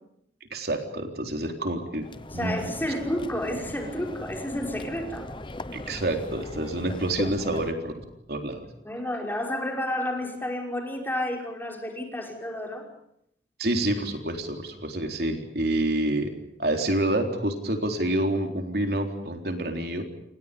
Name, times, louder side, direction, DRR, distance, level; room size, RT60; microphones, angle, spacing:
voice 1, 0.5-2.1 2.3-2.6 5.7-8.6 13.6-16.3 16.6-20.0, right 1 dB, 60° right, 4 dB, 3.9 m, -28 dB
sound 1, 2.0-7.7, left 1 dB, 30° left, 0.9 m, -38 dB
voice 2, 2.3-5.3 8.8-12.9, left 1 dB, 10° left, 2 dB, 5.6 m, -31 dB
29.0 x 28.5 x 5.3 m, 0.74 s
head